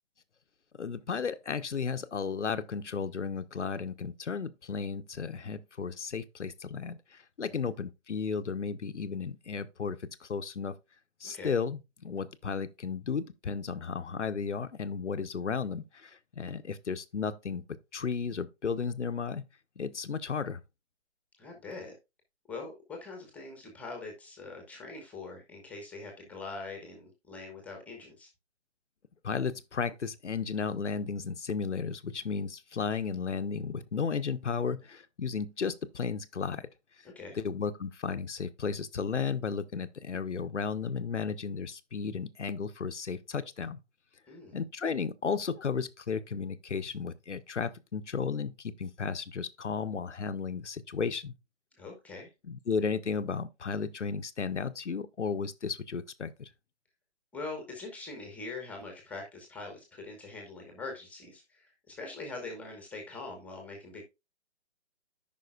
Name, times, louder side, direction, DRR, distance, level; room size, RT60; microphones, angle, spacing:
voice 1, 0.8-7.0 7.4-10.7 11.2-17.6 17.9-19.5 19.8-20.6 29.2-36.7 37.4-43.8 44.5-51.3 52.4-56.5, left 5 dB, 85° left, 0.9 m, -34 dB
voice 2, 21.4-21.9 22.5-28.3 37.0-37.4 44.3-44.6 51.7-52.3 57.3-64.0, left 3 dB, 5° left, 1.3 m, -43 dB
14.0 x 5.5 x 2.4 m
figure-of-eight pair, 145°, 35 cm